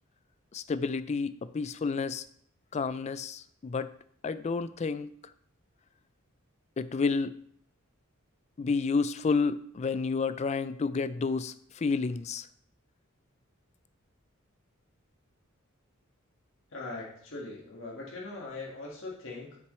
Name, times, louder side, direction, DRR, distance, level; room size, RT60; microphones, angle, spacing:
voice 1, 0.5-2.2 2.7-3.9 4.2-5.1 6.8-7.3 8.6-12.5, left 4 dB, 35° left, 14 dB, 0.3 m, -30 dB
voice 2, 16.7-19.6, left 3 dB, 65° left, -3 dB, 1.7 m, -41 dB
7.9 x 5.9 x 3.2 m, 0.63 s
head